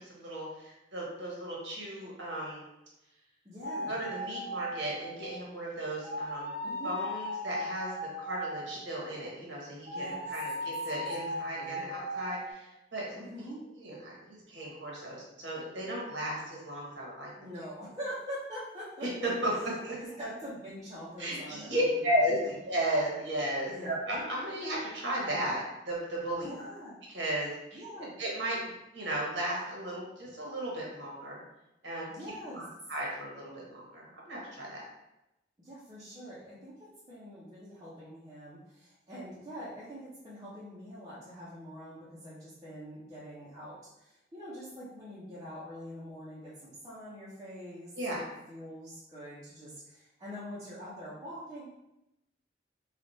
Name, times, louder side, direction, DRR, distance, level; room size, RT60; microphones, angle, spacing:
voice 1, 0.0-2.6 3.9-6.5 6.8-13.2 13.8-17.3 19.0-20.0 21.2-26.5 27.1-27.8 28.2-28.6 28.9-31.4 31.8-32.0 32.5-34.8 48.0-48.2, right 1 dB, 80° right, -3 dB, 1.2 m, -35 dB
voice 2, 3.4-4.0 6.6-6.9 9.9-10.2 10.9-11.8 13.2-13.6 17.4-22.6 23.7-24.0 26.4-27.0 27.7-28.1 32.1-32.6 35.6-36.8 37.1-51.6, equal, 20° right, -10 dB, 0.8 m, -44 dB
sound 1, 3.6-5.4 6.0-8.9 9.9-12.5, equal, 55° right, 0.9 m, -37 dB
3.3 x 2.4 x 4.0 m, 0.90 s
head